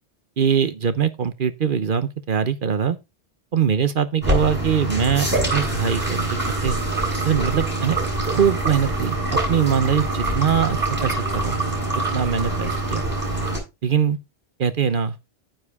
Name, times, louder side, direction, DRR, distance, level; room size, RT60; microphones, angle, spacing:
voice 1, 0.4-3.0 3.5-6.7 7.2-8.0 8.3-11.6 12.1-13.1 13.8-14.2 14.6-15.2, right 7 dB, 55° right, 0.9 m, -22 dB
sound 1, 4.2-13.6, right 2 dB, 10° right, 6.5 m, -24 dB
9.7 x 7.6 x 3.5 m
omnidirectional pair, 1.1 m